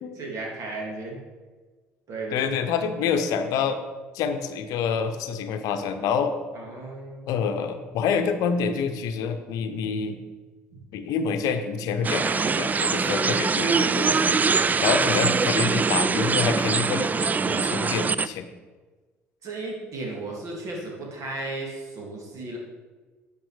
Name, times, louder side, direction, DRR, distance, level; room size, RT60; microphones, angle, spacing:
voice 1, 0.1-1.2 2.1-2.5 6.5-7.3 13.0-13.4 14.0-14.4 19.4-22.6, right 2 dB, 55° right, -1 dB, 2.4 m, -34 dB
voice 2, 2.3-3.8 4.1-6.4 7.3-10.2 10.9-14.1 14.8-17.1 17.5-18.5, left 6 dB, 65° left, 8 dB, 0.7 m, -27 dB
sound 1, 12.0-18.3, right 4 dB, 25° right, 0.3 m, -23 dB
9.1 x 5.3 x 4.8 m, 1.3 s
hypercardioid pair, 55°, 6 cm